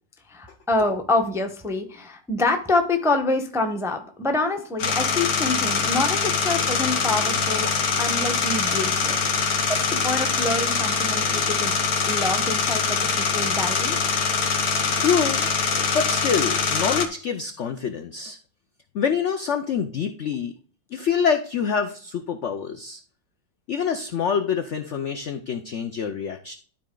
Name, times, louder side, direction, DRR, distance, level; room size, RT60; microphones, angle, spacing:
voice 1, 0.3-7.7 8.0-9.2 9.7-11.7 12.1-14.0, left 2 dB, 5° right, 5 dB, 0.5 m, -26 dB
sound 1, 4.8-17.1, left 5 dB, 55° left, 1.6 m, -23 dB
voice 2, 15.0-18.4 18.9-20.5 20.9-23.0 23.7-26.5, left 7 dB, 75° left, 7 dB, 0.6 m, -26 dB
12.5 x 4.2 x 3.8 m, 0.43 s
omnidirectional pair, 2.0 m